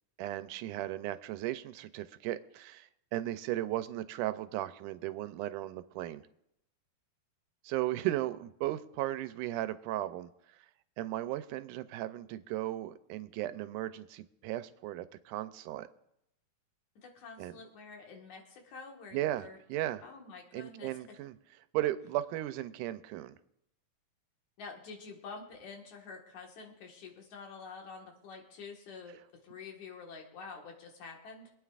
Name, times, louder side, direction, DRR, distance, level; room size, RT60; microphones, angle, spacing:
voice 1, 0.2-6.2 7.6-10.3 11.0-15.9 17.4-17.6 19.1-20.0 20.5-21.4 21.7-23.4, right 14 dB, 85° right, 13 dB, 2.1 m, -36 dB
voice 2, 17.0-19.6 20.0-20.9 24.6-31.5, left 4 dB, 70° left, 1 dB, 3.0 m, -48 dB
26.0 x 9.2 x 2.5 m, 0.79 s
omnidirectional pair, 3.6 m